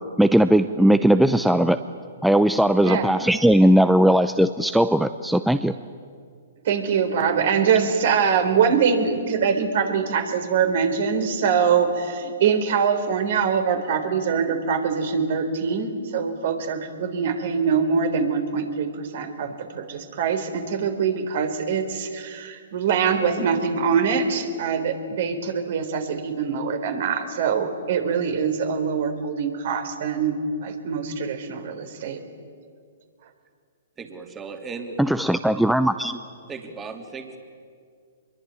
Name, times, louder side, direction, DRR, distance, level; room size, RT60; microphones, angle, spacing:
voice 1, 0.2-1.8 2.2-5.7 35.0-36.2, right 1 dB, ahead, 11 dB, 0.7 m, -18 dB
voice 2, 6.6-32.2, right 6 dB, 60° right, 7 dB, 3.9 m, -23 dB
voice 3, 34.0-35.0 36.5-37.4, right 4 dB, 20° right, 5 dB, 3.1 m, -36 dB
25.5 x 22.5 x 9.6 m, 2.2 s
hypercardioid pair, 125°, 0 cm